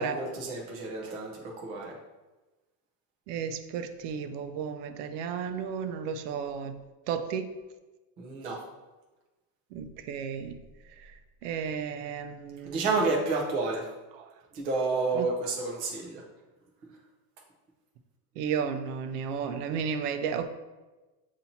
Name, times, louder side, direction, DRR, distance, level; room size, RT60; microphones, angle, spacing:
voice 1, 0.0-2.0 8.2-8.6 12.6-13.9 14.5-16.2, right 3 dB, 20° right, -2 dB, 0.4 m, -30 dB
voice 2, 3.3-6.8 7.1-7.5 9.7-10.6 11.0-11.1 11.4-12.9 14.1-14.3 15.1-15.3 18.4-20.5, right 7 dB, 75° right, 9 dB, 0.6 m, -33 dB
7.0 x 2.7 x 2.8 m, 1.2 s
cardioid pair, 175°, 47 cm